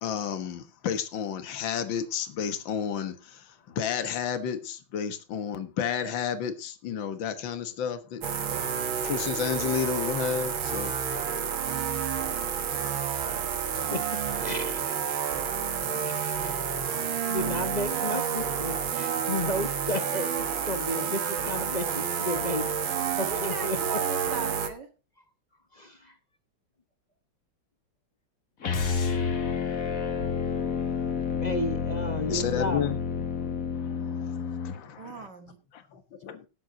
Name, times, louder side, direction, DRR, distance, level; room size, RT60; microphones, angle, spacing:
voice 1, 0.0-8.2 9.0-11.4 32.3-33.0 33.4-33.5 33.7-35.3 35.7-36.5, left 8 dB, 70° left, 2.1 m, -32 dB
sound 1, 8.2-24.7, right 7 dB, 85° right, 2.3 m, -30 dB
voice 2, 13.9-15.2 16.0-16.6 17.1-22.7 23.2-24.0 25.7-26.2 31.4-32.9, left 1 dB, 30° left, 0.9 m, -33 dB
voice 3, 23.2-24.9 35.0-35.6, right 5 dB, 60° right, 2.7 m, -38 dB
sound 2, 28.6-34.8, left 6 dB, 45° left, 2.1 m, -29 dB
18.0 x 7.8 x 3.9 m
omnidirectional pair, 2.2 m